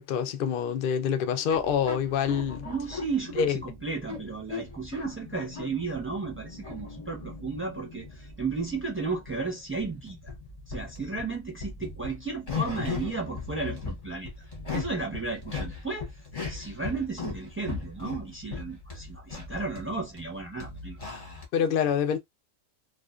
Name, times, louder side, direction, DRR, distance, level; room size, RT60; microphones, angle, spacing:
voice 1, 0.0-2.7 3.4-3.6 21.5-22.2, left 8 dB, 70° left, 0.5 m, -26 dB
sound 1, 1.5-21.5, left 5 dB, 35° left, 0.8 m, -39 dB
voice 2, 2.6-10.3 10.7-14.3 14.7-16.1 16.5-21.0, right 4 dB, 15° right, 0.6 m, -34 dB
2.5 x 2.4 x 2.4 m
omnidirectional pair, 1.4 m